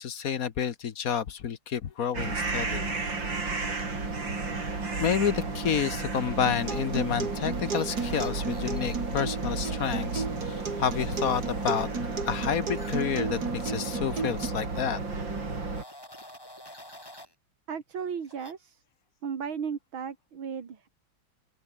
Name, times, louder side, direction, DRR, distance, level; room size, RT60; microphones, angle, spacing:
voice 1, 0.0-2.9 5.0-11.9 12.3-15.0, left 8 dB, 50° left, 1.3 m, -29 dB
sound 1, 2.1-15.8, right 3 dB, 65° right, 5.2 m, -33 dB
Acoustic guitar, 6.5-14.5, right 4 dB, 50° right, 3.4 m, -35 dB
sound 2, 7.3-9.3 11.2-11.9 12.8-14.2 14.4-14.7 15.5-17.3 18.2-18.5, left 1 dB, 10° left, 6.1 m, -49 dB
voice 2, 17.7-18.8 19.2-20.9, right 7 dB, 85° right, 2.9 m, -35 dB
open air
omnidirectional pair, 2.2 m